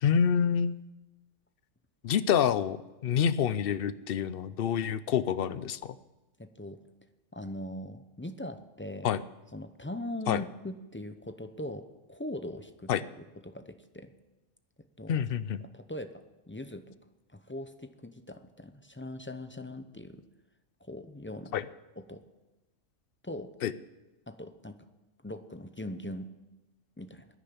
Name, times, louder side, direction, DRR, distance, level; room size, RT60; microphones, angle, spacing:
voice 1, 0.0-0.8 2.0-2.8 3.0-6.0 9.0-9.2 10.3-10.4 12.9-13.0 15.1-15.6 21.5-21.6 23.6-23.7, left 8 dB, 60° left, 15 dB, 0.7 m, -27 dB
voice 2, 6.4-6.8 7.3-9.1 9.5-12.9 13.2-14.1 15.0-15.2 15.6-16.1 16.5-17.0 17.3-20.2 20.8-21.6 22.0-22.2 23.2-23.5 24.3-24.8 25.2-26.3 27.0-27.3, left 1 dB, 15° left, 9 dB, 0.5 m, -41 dB
11.0 x 10.0 x 8.7 m, 1.1 s
omnidirectional pair, 1.3 m